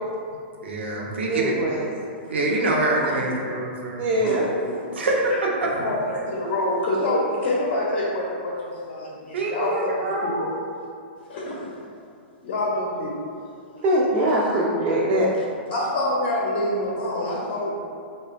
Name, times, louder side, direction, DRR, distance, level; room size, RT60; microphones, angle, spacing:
voice 1, 0.6-1.6 2.3-4.0 4.9-5.9 9.3-10.5 15.9-16.0, right 2 dB, 85° right, -2 dB, 0.6 m, -25 dB
voice 2, 1.3-1.9 3.9-4.4 13.8-15.3, right 1 dB, 30° right, -5 dB, 0.3 m, -22 dB
voice 3, 5.7-10.3 11.3-11.6 12.4-13.1 15.7-17.7, left 1 dB, 60° left, -5 dB, 0.6 m, -26 dB
3.6 x 2.2 x 2.5 m, 2.4 s
hypercardioid pair, 140°, 6 cm